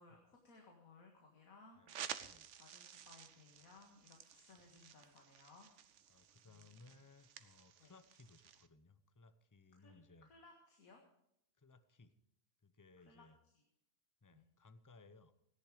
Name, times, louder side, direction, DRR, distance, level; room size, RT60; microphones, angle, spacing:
voice 1, 0.0-2.1 2.6-5.7 6.5-6.9 7.8-7.9 9.8-11.0 13.0-13.2 14.3-14.5, left 3 dB, 90° left, 1 dB, 2.3 m, -63 dB
voice 2, 1.8-2.5 3.7-3.8 4.6-4.8 6.1-10.3 11.6-12.2 12.6-13.4 14.2-15.3, left 3 dB, 20° left, 12 dB, 0.6 m, -63 dB
sound 1, 1.9-8.7, right 9 dB, 65° right, 1.0 m, -53 dB
17.0 x 11.0 x 5.0 m, 0.79 s
omnidirectional pair, 1.4 m